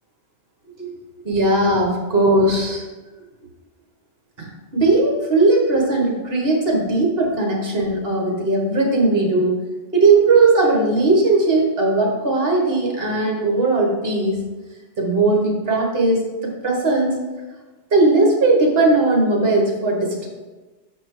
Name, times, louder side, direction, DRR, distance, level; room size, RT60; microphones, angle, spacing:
voice 1, 1.2-2.8 4.4-9.6 9.9-14.4 15.0-17.1 17.9-20.3, right 2 dB, 55° right, 0 dB, 1.6 m, -18 dB
6.3 x 4.4 x 4.7 m, 1.2 s
omnidirectional pair, 1.2 m